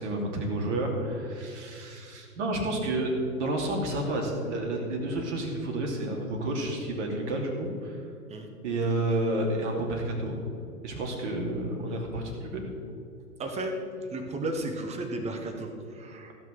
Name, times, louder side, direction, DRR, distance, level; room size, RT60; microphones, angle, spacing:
voice 1, 0.0-3.1 3.4-8.0 8.6-10.4 10.8-12.6, right 1 dB, 50° right, 1 dB, 2.7 m, -30 dB
voice 2, 13.4-13.7 14.1-16.3, right 2 dB, 15° right, 4 dB, 1.2 m, -34 dB
15.0 x 6.1 x 6.2 m, 2.4 s
figure-of-eight pair, 110°, 46 cm